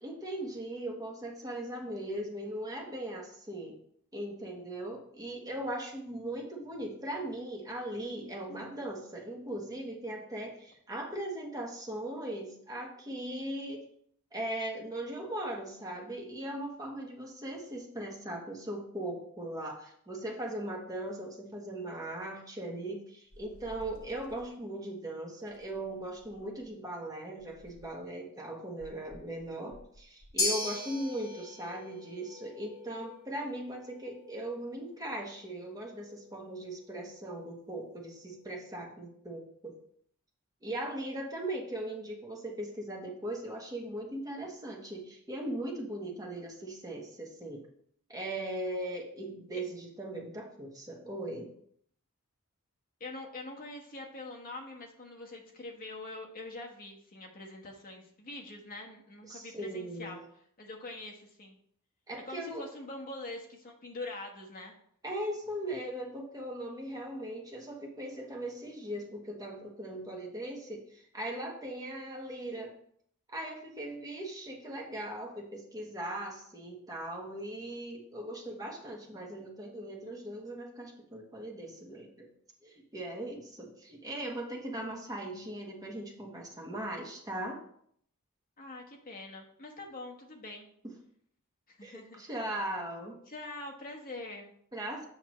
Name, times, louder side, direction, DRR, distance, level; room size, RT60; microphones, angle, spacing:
voice 1, 0.0-3.7 4.1-13.8 14.3-39.7 40.6-47.6 48.1-51.5 59.3-60.2 62.1-62.7 65.0-72.7 73.3-82.3 82.6-87.6 91.8-93.1 94.7-95.1, right 1 dB, 15° right, 0 dB, 1.3 m, -39 dB
sound 1, 23.3-24.5 25.5-26.7 27.4-28.1 28.8-30.4, equal, 70° left, 1.0 m, -55 dB
sound 2, 30.4-38.7, left 2 dB, 15° left, 1.8 m, -40 dB
voice 2, 53.0-60.2 60.6-61.6 62.2-64.7 88.6-90.7 91.7-92.2 93.3-94.5, left 2 dB, 40° left, 0 dB, 1.3 m, -44 dB
7.9 x 5.7 x 3.1 m, 0.66 s
head